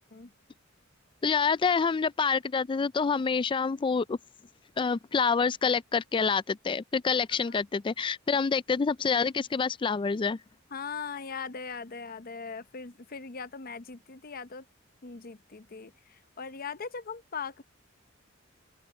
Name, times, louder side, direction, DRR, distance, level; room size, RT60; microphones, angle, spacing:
voice 1, 1.2-4.2 4.8-10.4, left 5 dB, 25° left, 0.3 m, -27 dB
voice 2, 10.7-14.6 15.0-17.6, left 5 dB, 45° left, 0.8 m, -40 dB
head